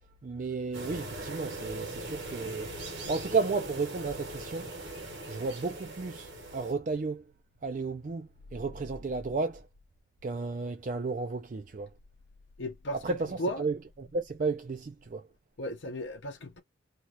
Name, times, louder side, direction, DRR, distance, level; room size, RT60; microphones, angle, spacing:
voice 1, 0.2-2.7 3.1-4.7 5.3-7.2 7.6-9.6 10.2-11.9 13.0-15.2, right 4 dB, 40° right, 0.4 m, -33 dB
sound 1, 0.7-6.7, right 2 dB, 70° right, 1.4 m, -40 dB
voice 2, 12.6-13.7 15.6-16.6, equal, 70° left, 0.7 m, -36 dB
2.8 x 2.3 x 2.9 m
head